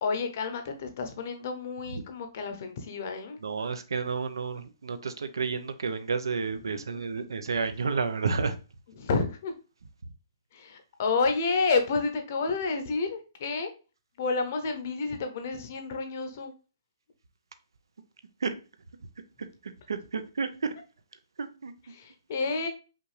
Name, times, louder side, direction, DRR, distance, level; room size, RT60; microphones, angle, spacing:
voice 1, 0.0-3.4 6.7-6.8 9.0-9.5 10.5-13.7 14.2-16.5 21.9-22.7, left 4 dB, 30° left, 0.7 m, -30 dB
voice 2, 3.4-8.6 18.4-18.5 19.9-20.7 21.4-21.7, right 4 dB, 90° right, 0.7 m, -31 dB
5.5 x 2.5 x 3.2 m
hypercardioid pair, 175°, 2 cm